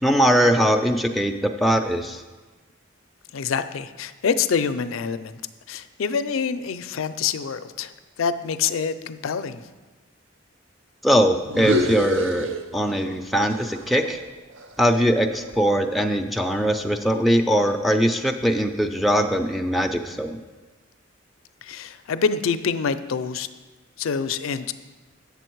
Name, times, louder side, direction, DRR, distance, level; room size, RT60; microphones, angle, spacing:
voice 1, 0.0-2.2 11.0-12.5 12.7-14.2 14.8-20.4, equal, ahead, 3 dB, 0.4 m, -21 dB
voice 2, 3.3-5.3 5.7-7.9 8.2-9.6 21.6-23.5 24.0-24.7, left 6 dB, 85° left, 11 dB, 0.4 m, -26 dB
sound 1, 11.5-13.2 13.5-15.7, equal, 70° right, 0.6 m, -29 dB
8.4 x 7.0 x 4.6 m, 1.2 s
head